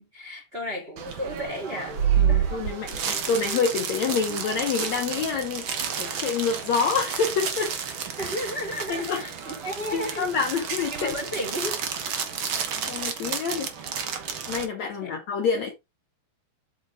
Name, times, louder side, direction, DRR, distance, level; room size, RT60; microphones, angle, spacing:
voice 1, 0.0-2.6 8.2-10.3 10.9-11.8 15.0-15.1, left 1 dB, 15° right, 3.1 m, -34 dB
sound 1, 1.0-14.7, right 7 dB, 65° right, 1.2 m, -30 dB
voice 2, 2.2-5.7 6.0-7.7 8.9-9.2 9.9-11.2 12.9-13.7 14.5-15.7, left 5 dB, 60° left, 2.0 m, -27 dB
8.1 x 6.6 x 3.7 m
omnidirectional pair, 4.2 m